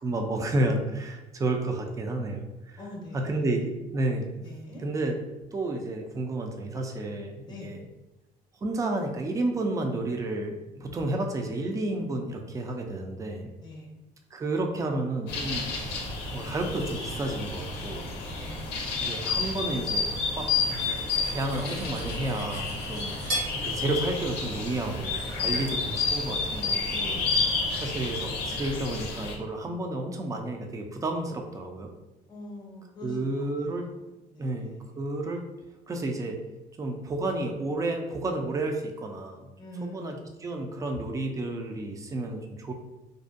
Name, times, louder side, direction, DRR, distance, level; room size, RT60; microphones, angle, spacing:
voice 1, 0.0-2.8 3.1-4.3 4.8-5.1 5.5-7.8 8.6-13.5 14.3-15.7 16.3-18.1 19.0-21.0 21.3-23.2 23.5-27.2 27.8-31.9 33.0-33.8 34.4-35.4 35.9-36.4 36.8-39.5 39.8-42.7, right 2 dB, 20° right, 3 dB, 0.3 m, -31 dB
voice 2, 2.8-3.6 4.3-4.9 7.4-7.7 13.6-13.9 18.3-19.0 25.4-25.8 27.1-27.8 32.3-34.0 34.3-34.9 39.6-40.3, left 1 dB, 25° left, -1 dB, 0.7 m, -44 dB
sound 1, 15.3-29.4, left 4 dB, 85° left, 0.5 m, -30 dB
Cutlery silverware, 20.3-23.5, right 1 dB, 75° right, 1.2 m, -37 dB
2.5 x 2.1 x 2.5 m, 1.0 s
cardioid pair, 110°, 17 cm